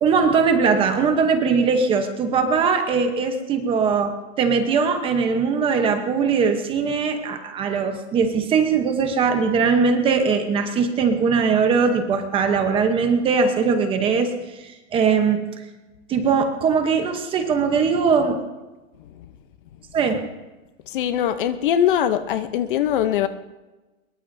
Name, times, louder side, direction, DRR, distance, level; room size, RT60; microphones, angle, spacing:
voice 1, 0.0-15.4 16.1-18.4 19.9-20.2, right 5 dB, 15° right, 6 dB, 0.9 m, -20 dB
voice 2, 20.9-23.3, left 10 dB, 40° left, 11 dB, 0.8 m, -22 dB
23.5 x 22.0 x 2.7 m, 1.1 s
hypercardioid pair, 165°, 41 cm